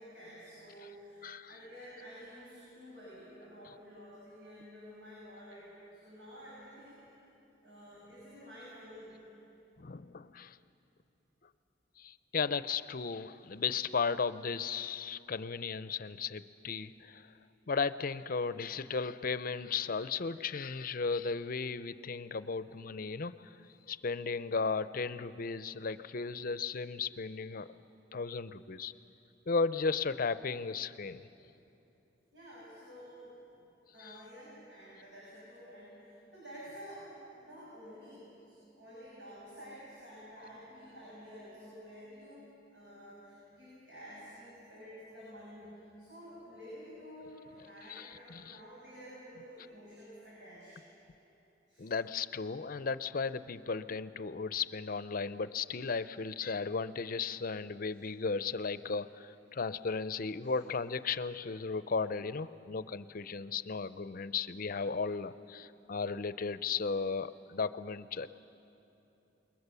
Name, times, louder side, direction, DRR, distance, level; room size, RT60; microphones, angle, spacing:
voice 1, 0.0-7.1 7.6-9.2 32.3-33.7 33.9-50.8 51.7-51.9 59.5-59.6 60.4-60.5, equal, 80° right, -7 dB, 7.2 m, -51 dB
voice 2, 9.8-10.6 12.0-17.3 17.7-23.6 23.9-27.7 28.1-28.9 29.5-31.3 34.0-34.2 47.9-48.6 51.8-68.3, left 5 dB, 50° left, 14 dB, 0.6 m, -35 dB
28.5 x 22.0 x 6.9 m, 2.9 s
head